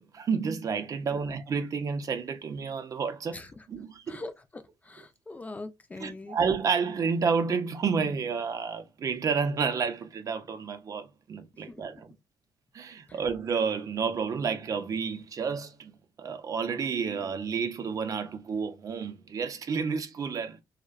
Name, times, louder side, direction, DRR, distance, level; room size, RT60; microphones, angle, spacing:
voice 1, 0.0-3.4 3.7-4.2 6.0-12.1 12.7-15.9 16.2-20.6, right 5 dB, 45° right, 0.5 m, -30 dB
voice 2, 3.3-3.7 4.1-6.4 11.5-11.8 13.1-13.2, left 2 dB, 20° left, 0.3 m, -43 dB
2.6 x 2.1 x 2.3 m
cardioid pair, 110°, 8 cm